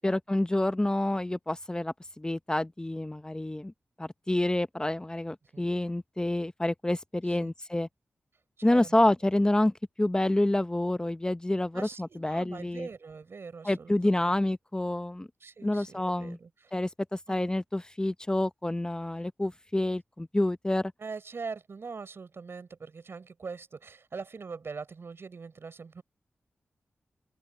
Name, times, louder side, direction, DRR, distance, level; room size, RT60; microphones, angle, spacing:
voice 1, 0.0-3.7 4.0-7.9 8.6-9.7 10.0-12.9 13.6-15.3 15.6-16.4 16.7-16.9 17.3-20.9, left 1 dB, 15° left, 0.8 m, -28 dB
voice 2, 8.6-8.9 11.7-14.4 15.4-16.7 17.3-17.4 21.0-26.0, right 4 dB, 65° right, 4.5 m, -42 dB
open air
cardioid pair, 55°, 4 cm